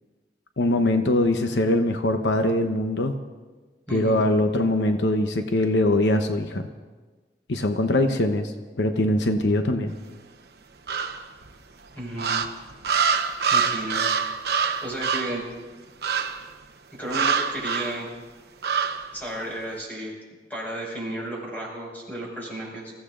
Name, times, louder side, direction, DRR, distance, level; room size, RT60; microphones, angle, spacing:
voice 1, 0.6-3.1 3.9-6.7 7.5-10.0, left 1 dB, 85° left, 6 dB, 0.9 m, -22 dB
voice 2, 3.9-4.2 12.0-12.5 13.5-14.1 14.8-15.4 17.0-18.1 19.1-20.1 20.5-22.9, right 1 dB, 10° left, -4 dB, 5.5 m, -33 dB
sound 1, 10.9-11.5 12.2-15.4 16.0-16.5 17.1-18.0 18.6-19.1, right 6 dB, 60° right, 0.9 m, -25 dB
26.5 x 15.5 x 2.5 m, 1.3 s
head